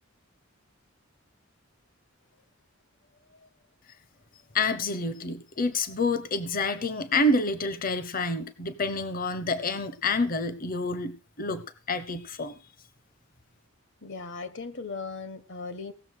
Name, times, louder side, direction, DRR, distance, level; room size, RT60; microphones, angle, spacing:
voice 1, 4.5-12.6, left 2 dB, 45° left, 1.1 m, -28 dB
voice 2, 14.0-15.9, left 4 dB, 65° left, 1.6 m, -37 dB
17.5 x 6.9 x 6.7 m
head